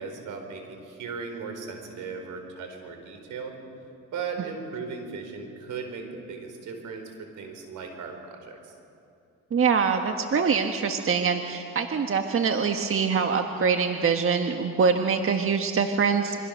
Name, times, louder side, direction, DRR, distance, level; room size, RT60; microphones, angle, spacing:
voice 1, 0.0-3.6 4.1-8.7, right 5 dB, 85° right, 4 dB, 4.4 m, -37 dB
voice 2, 9.5-16.4, right 5 dB, 45° right, 5 dB, 1.5 m, -24 dB
27.0 x 24.5 x 6.6 m, 2.6 s
cardioid pair, 90°, 30 cm